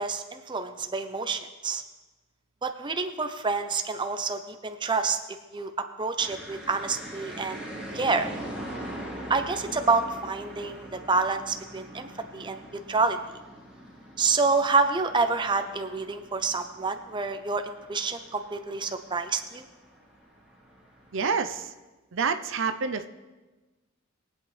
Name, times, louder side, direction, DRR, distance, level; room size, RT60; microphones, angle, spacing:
voice 1, 0.0-1.8 2.6-5.2 5.5-5.7 6.0-7.6 7.9-8.3 9.3-13.2 14.2-19.7, right 4 dB, 25° right, 7 dB, 0.6 m, -28 dB
sound 1, 6.2-21.6, right 1 dB, 5° right, 2.2 m, -43 dB
voice 2, 21.1-21.7 22.1-23.1, right 5 dB, 65° right, 9 dB, 0.6 m, -28 dB
22.0 x 8.2 x 3.3 m, 1.2 s
head